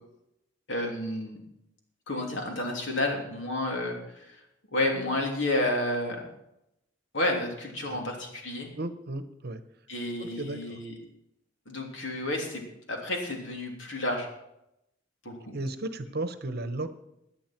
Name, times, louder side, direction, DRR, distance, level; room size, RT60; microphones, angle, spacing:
voice 1, 0.7-1.4 2.1-4.4 4.7-6.2 7.1-8.7 9.9-10.9 11.7-12.6 12.9-14.3 15.2-15.6, left 1 dB, 70° left, 1 dB, 3.2 m, -30 dB
voice 2, 8.7-9.6 10.2-10.8 15.5-16.9, right 2 dB, 55° right, 11 dB, 1.0 m, -34 dB
17.5 x 10.0 x 4.6 m, 0.83 s
head